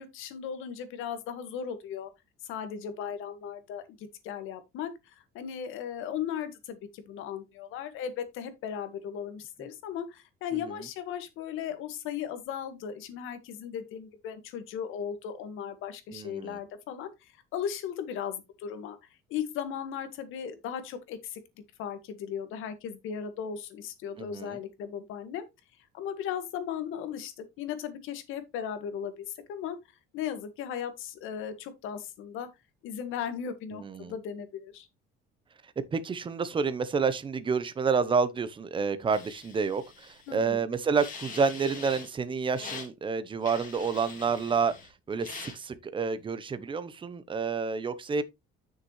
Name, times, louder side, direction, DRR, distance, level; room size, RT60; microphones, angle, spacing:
voice 1, 0.0-2.1 2.4-19.0 19.3-21.4 21.8-25.5 25.9-29.8 30.1-32.5 32.8-34.9 40.3-40.6, left 8 dB, 75° left, 1.7 m, -37 dB
voice 2, 16.1-16.6 24.2-24.6 33.7-34.1 35.9-44.7 45.1-48.2, right 5 dB, 25° right, 0.9 m, -29 dB
sound 1, 39.1-40.4 40.9-42.1 42.5-42.9 43.4-44.9 45.2-45.6, left 5 dB, 40° left, 2.6 m, -44 dB
8.9 x 6.5 x 3.2 m
cardioid pair, 125°, 21 cm